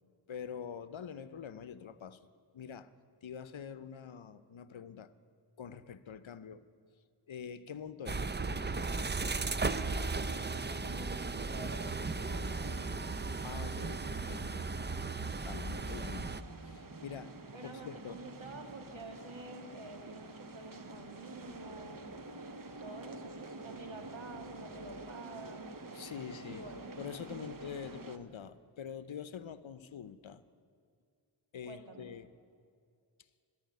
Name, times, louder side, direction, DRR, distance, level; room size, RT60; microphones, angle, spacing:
voice 1, 0.3-2.2 2.5-2.9 3.2-5.1 5.6-6.6 7.3-8.3 13.4-14.7 15.4-16.3 16.6-17.3 17.6-18.2 25.9-26.7 27.0-30.4 31.5-32.3, left 7 dB, 75° left, 14 dB, 0.7 m, -45 dB
sound 1, 8.1-16.4, right 3 dB, 25° right, 0.5 m, -36 dB
voice 2, 9.7-12.9 17.5-22.0 22.6-25.7 26.4-26.9 31.7-32.1, right 2 dB, 75° right, 3 dB, 2.1 m, -49 dB
sound 2, 12.3-28.2, right 2 dB, 45° right, 1.0 m, -48 dB
14.5 x 9.8 x 9.4 m, 2.3 s
wide cardioid pair, 40°, 48 cm